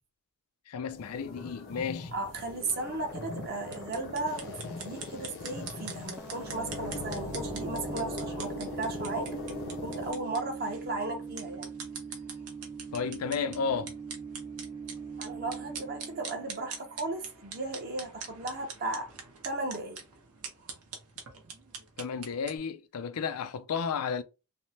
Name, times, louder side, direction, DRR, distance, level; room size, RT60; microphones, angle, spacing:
voice 1, 0.7-2.1 12.9-13.9 22.0-24.2, left 6 dB, 80° left, 0.4 m, -33 dB
sound 1, 0.9-10.1, left 3 dB, 60° left, 0.8 m, -40 dB
voice 2, 2.1-9.3 9.8-11.7 15.2-19.1 19.4-20.0, right 2 dB, 45° right, 0.7 m, -35 dB
sound 2, 3.6-22.6, right 6 dB, 75° right, 0.9 m, -45 dB
sound 3, 6.2-17.7, right 5 dB, 10° right, 0.4 m, -42 dB
3.4 x 2.1 x 2.8 m
head